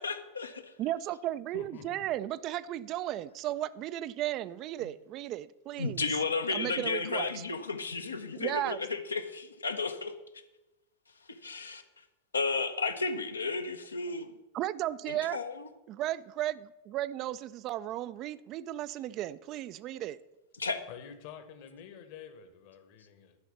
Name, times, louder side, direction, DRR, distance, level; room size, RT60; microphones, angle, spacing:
voice 1, 0.0-0.6 5.8-10.1 11.3-11.8 12.3-14.3 15.1-15.6 20.6-20.8, left 4 dB, 75° left, 0.8 m, -33 dB
voice 2, 0.8-6.0 6.5-7.4 8.3-8.8 14.5-15.4 15.9-20.2, right 13 dB, 35° right, 0.3 m, -35 dB
voice 3, 1.5-2.1 20.9-23.4, left 8 dB, 45° left, 1.2 m, -48 dB
11.5 x 5.0 x 7.0 m
figure-of-eight pair, 90°, 0 cm